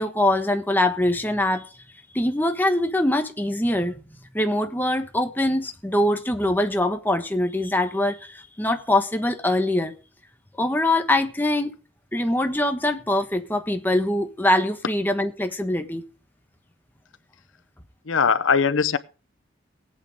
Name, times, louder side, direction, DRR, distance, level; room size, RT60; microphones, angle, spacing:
voice 1, 0.0-1.7 2.1-4.0 4.3-9.9 10.6-11.7 12.1-16.1, left 1 dB, 10° left, 1.3 m, -23 dB
voice 2, 18.1-19.0, left 6 dB, 90° left, 0.7 m, -20 dB
19.0 x 8.8 x 3.6 m
head